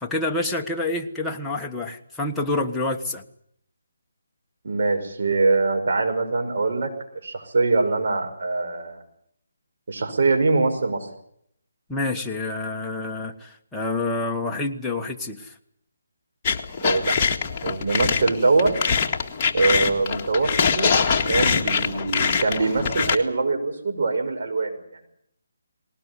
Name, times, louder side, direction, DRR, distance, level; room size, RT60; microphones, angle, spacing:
voice 1, 0.0-3.2 11.9-15.5, left 2 dB, 5° left, -1 dB, 1.4 m, -28 dB
voice 2, 4.6-6.9 7.2-9.0 9.9-11.1 16.8-17.1 17.6-18.7 19.5-20.5 20.8-25.1, right 3 dB, 55° right, 4 dB, 5.7 m, -23 dB
sound 1, 16.5-23.2, left 6 dB, 25° left, 1.9 m, -23 dB
20.0 x 19.0 x 9.8 m, 0.69 s
hypercardioid pair, 160°, 0 cm